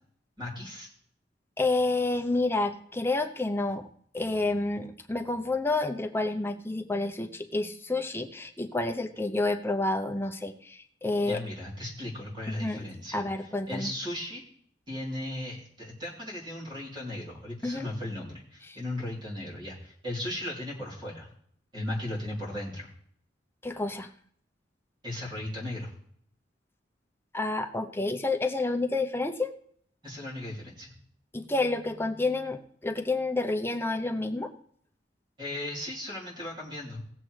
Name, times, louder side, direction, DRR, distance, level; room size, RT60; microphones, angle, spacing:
voice 1, 0.4-0.9 11.2-13.2 13.7-14.4 14.9-21.3 21.7-22.9 25.0-25.9 30.0-30.9 35.4-37.0, left 1 dB, 25° right, -5 dB, 3.5 m, -36 dB
voice 2, 1.6-3.8 4.1-11.4 12.5-12.8 13.1-13.9 17.6-17.9 18.6-18.8 23.6-24.1 27.3-29.5 31.3-34.5, left 2 dB, 15° left, 6 dB, 0.7 m, -29 dB
18.0 x 7.4 x 3.2 m, 0.63 s
head